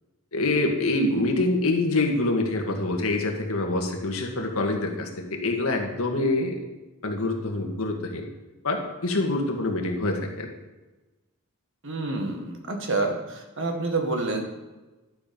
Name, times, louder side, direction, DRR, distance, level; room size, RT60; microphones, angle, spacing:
voice 1, 0.3-6.6 7.0-8.3 8.6-10.5, left 2 dB, 70° left, 2 dB, 1.7 m, -25 dB
voice 2, 11.8-14.4, right 3 dB, 55° right, 3 dB, 1.7 m, -28 dB
11.5 x 6.9 x 5.3 m, 1.2 s
head